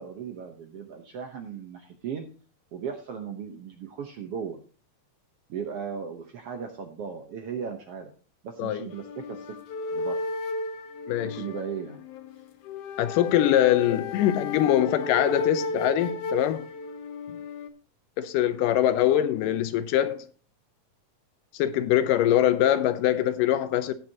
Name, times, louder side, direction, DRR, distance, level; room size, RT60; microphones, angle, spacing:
voice 1, 0.0-2.3 2.7-4.6 5.5-8.1 8.4-9.5 9.9-10.2 11.3-12.0 19.4-19.6, right 7 dB, 65° right, 1.5 m, -36 dB
sound 1, 8.9-17.7, left 2 dB, 65° left, 1.7 m, -34 dB
voice 2, 11.1-11.4 13.0-16.7 18.2-20.3 21.5-23.9, left 11 dB, 85° left, 2.3 m, -23 dB
17.5 x 7.7 x 2.9 m
omnidirectional pair, 3.8 m